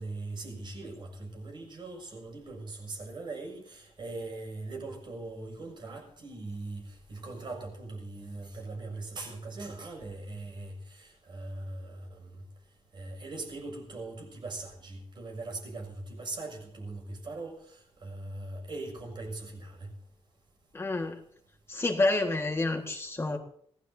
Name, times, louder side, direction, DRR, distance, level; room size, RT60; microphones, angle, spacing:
voice 1, 0.0-12.3 12.9-19.9, right 2 dB, 45° right, 2 dB, 6.5 m, -40 dB
voice 2, 20.7-21.2 21.7-23.4, left 2 dB, 25° left, 2 dB, 1.8 m, -28 dB
26.0 x 18.5 x 2.8 m, 0.62 s
wide cardioid pair, 170°, 11 cm